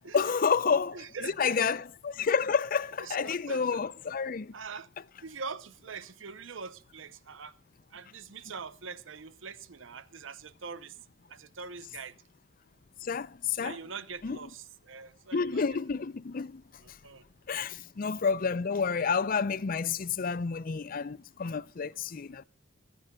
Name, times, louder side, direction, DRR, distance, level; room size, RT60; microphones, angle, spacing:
voice 1, 0.1-1.0 1.4-4.5 13.0-13.8 14.2-14.4 15.3-16.6 16.9-17.0 17.5-22.4, left 5 dB, 45° left, 0.5 m, -29 dB
voice 2, 0.9-1.8 3.0-3.8 4.5-4.9 5.2-7.5 7.9-11.0 11.3-12.2 13.5-15.6 16.8-17.3 17.6-17.7, right 5 dB, 80° right, 0.7 m, -43 dB
28.0 x 10.0 x 2.3 m
head